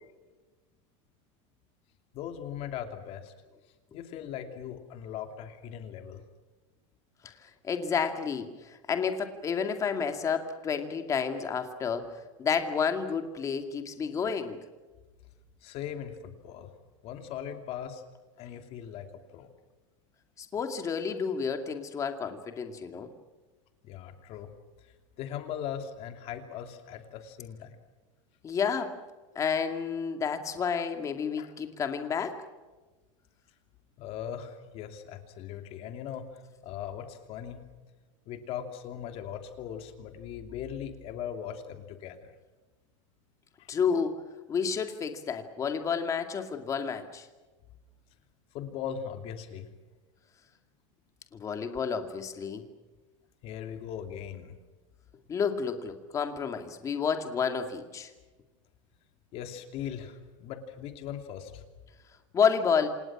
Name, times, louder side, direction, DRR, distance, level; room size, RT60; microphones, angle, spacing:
voice 1, 2.1-3.3 3.9-6.2 15.6-16.7 17.0-18.0 18.4-19.1 19.3-19.5 23.8-24.5 25.2-27.7 31.4-31.5 34.0-37.7 38.3-42.3 43.6-43.7 48.5-49.7 53.4-54.5 59.3-61.6, left 9 dB, 35° left, 6 dB, 2.8 m, -39 dB
voice 2, 7.2-12.1 12.4-14.6 20.4-23.1 28.4-28.9 29.4-32.4 43.7-44.1 44.5-47.3 51.3-52.6 55.3-58.1 62.3-62.9, left 6 dB, 20° left, 6 dB, 2.3 m, -30 dB
28.0 x 28.0 x 6.1 m, 1.2 s
supercardioid pair, 175°, 17 cm